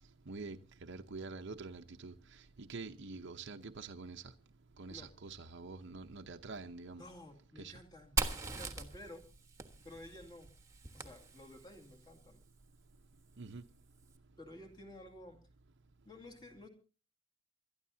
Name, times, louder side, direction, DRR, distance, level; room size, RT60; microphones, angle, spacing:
voice 1, 0.3-2.1 2.6-4.2 4.8-7.0 7.6-7.7 13.4-13.6, right 3 dB, 55° right, 0.8 m, -46 dB
voice 2, 7.0-9.2 9.8-10.5 10.9-12.4 14.4-15.4 16.0-16.7, left 1 dB, 20° left, 2.4 m, -53 dB
Fire, 8.2-11.8, right 3 dB, 15° right, 1.3 m, -40 dB
28.0 x 12.5 x 2.8 m
head